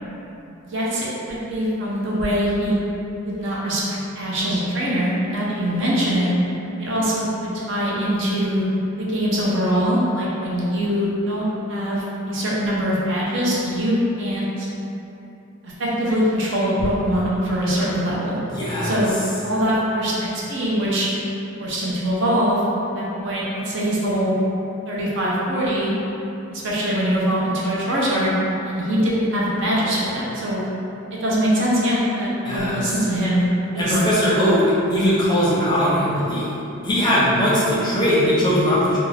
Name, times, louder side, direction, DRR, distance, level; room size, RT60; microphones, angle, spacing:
voice 1, 0.6-2.8 3.2-3.8 4.2-6.3 6.8-8.6 9.0-14.7 15.6-18.4 18.8-19.2 19.4-21.1 21.6-22.6 22.9-24.4 24.9-25.9 26.5-30.6 31.2-34.0, equal, 60° right, -7 dB, 0.6 m, -22 dB
voice 2, 18.5-19.0 32.4-32.8 33.8-34.6 34.9-36.5 36.8-39.0, equal, 20° left, -9 dB, 0.5 m, -19 dB
2.5 x 2.3 x 3.2 m, 2.9 s
head